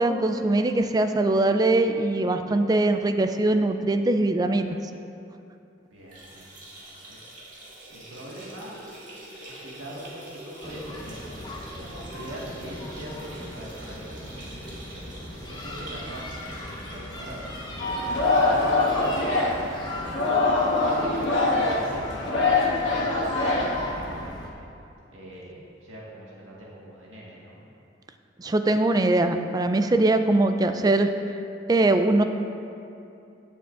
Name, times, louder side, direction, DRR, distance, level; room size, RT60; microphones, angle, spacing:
voice 1, 0.0-4.8 28.4-31.1 31.7-32.2, right 2 dB, 20° right, 8 dB, 0.3 m, -22 dB
voice 2, 5.9-7.2 7.9-8.7 9.5-11.4 11.8-14.7 15.4-19.3 19.9-24.7 25.1-27.6, right 1 dB, 85° right, -5 dB, 1.7 m, -42 dB
sound 1, 6.0-21.4 21.8-21.9 22.2-22.3 23.3-23.4, right 1 dB, 40° right, 1.9 m, -45 dB
sound 2, 10.6-24.5, left 1 dB, 20° left, 0.9 m, -38 dB
Singing, 17.8-24.2, left 3 dB, 75° left, 1.6 m, -24 dB
16.5 x 6.9 x 2.5 m, 2.7 s
head